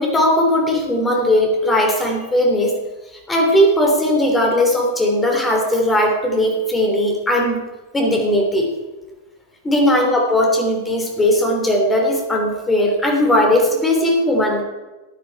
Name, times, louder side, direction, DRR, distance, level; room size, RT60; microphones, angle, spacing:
voice 1, 0.0-2.7 3.3-7.6 7.9-8.7 9.6-14.6, left 1 dB, 10° left, 1 dB, 3.1 m, -18 dB
13.5 x 9.3 x 4.5 m, 1.1 s
figure-of-eight pair, 90°, 0 cm